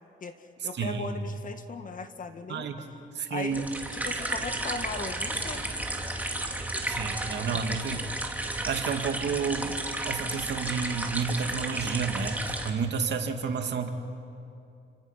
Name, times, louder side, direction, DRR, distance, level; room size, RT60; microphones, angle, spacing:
voice 1, 0.2-2.7 3.3-3.7 3.9-5.7 7.5-7.8, left 4 dB, 40° left, 8 dB, 1.7 m, -38 dB
voice 2, 0.8-1.1 2.5-2.7 3.2-3.7 6.9-8.0 8.7-9.8 10.0-13.9, right 5 dB, 60° right, 5 dB, 2.3 m, -30 dB
sound 1, 3.5-12.7, right 1 dB, 10° right, 2.6 m, -33 dB
29.5 x 26.5 x 5.9 m, 2.7 s
cardioid pair, 90°, 20 cm